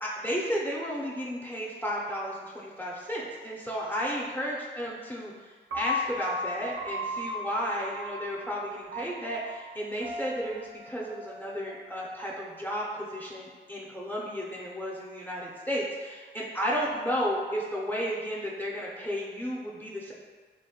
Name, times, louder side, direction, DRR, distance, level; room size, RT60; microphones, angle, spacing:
voice 1, 0.0-5.3 5.7-20.1, equal, 10° left, -5 dB, 0.5 m, -33 dB
Piano, 5.7-11.9, left 1 dB, 80° right, 0.5 m, -36 dB
3.0 x 2.1 x 2.8 m, 1.5 s
cardioid pair, 50°, 20 cm